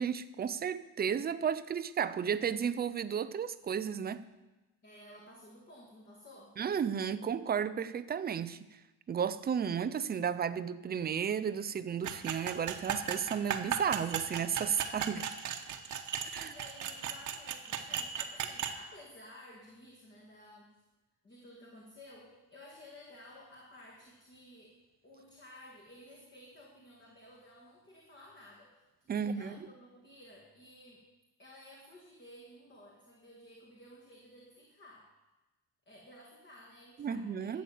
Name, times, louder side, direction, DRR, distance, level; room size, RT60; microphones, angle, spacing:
voice 1, 0.0-4.2 6.6-8.6 9.1-15.3 16.3-16.5 29.1-29.5 37.0-37.6, right 7 dB, 25° right, 13 dB, 0.4 m, -33 dB
voice 2, 4.8-6.6 16.3-20.8 21.2-24.8 25.0-31.0 31.4-35.1 35.9-37.6, left 1 dB, 25° left, -1 dB, 2.1 m, -54 dB
sound 1, 12.0-18.8, right 8 dB, 45° right, 1.1 m, -36 dB
12.5 x 8.6 x 7.2 m, 1.1 s
cardioid pair, 155°, 41 cm